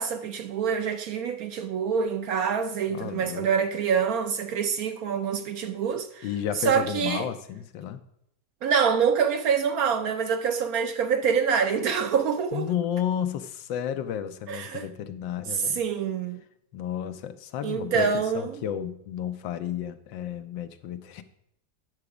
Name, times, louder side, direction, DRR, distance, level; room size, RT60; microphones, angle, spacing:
voice 1, 0.0-6.2 6.6-7.3 8.6-12.7 14.5-14.9 15.5-16.4 17.6-18.6, right 6 dB, 65° right, 0.9 m, -26 dB
voice 2, 2.9-3.5 6.2-8.0 12.5-15.8 16.7-21.2, left 9 dB, 90° left, 1.4 m, -32 dB
9.4 x 6.8 x 4.9 m
omnidirectional pair, 1.9 m